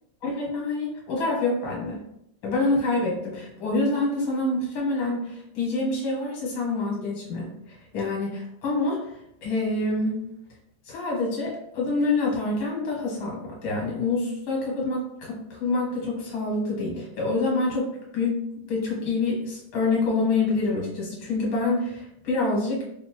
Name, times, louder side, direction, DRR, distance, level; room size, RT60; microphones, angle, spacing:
voice 1, 0.2-2.0 2.4-10.2 10.9-17.9 18.1-18.4 18.7-22.8, left 3 dB, 80° left, -3 dB, 2.1 m, -26 dB
5.3 x 2.1 x 2.9 m, 0.75 s
omnidirectional pair, 2.2 m